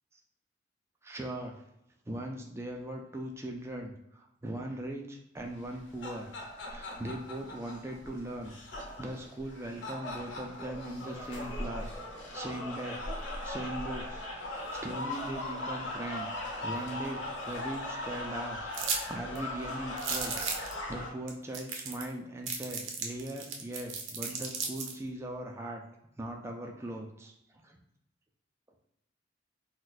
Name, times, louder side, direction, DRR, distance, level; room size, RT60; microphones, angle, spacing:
voice 1, 1.0-1.6 2.1-6.3 6.6-8.6 9.0-11.9 12.3-13.0 13.4-18.7 19.1-25.8 26.2-27.3 27.6-27.8, right 1 dB, 15° right, 1 dB, 0.3 m, -40 dB
sound 1, 5.6-21.1, left 1 dB, 70° left, 0.7 m, -39 dB
sound 2, 18.7-19.0 19.3-19.4 20.0-20.7 21.3-21.4 21.5-22.1 22.5-24.9, right 5 dB, 85° right, 0.6 m, -34 dB
2.4 x 2.2 x 4.0 m, 0.82 s
head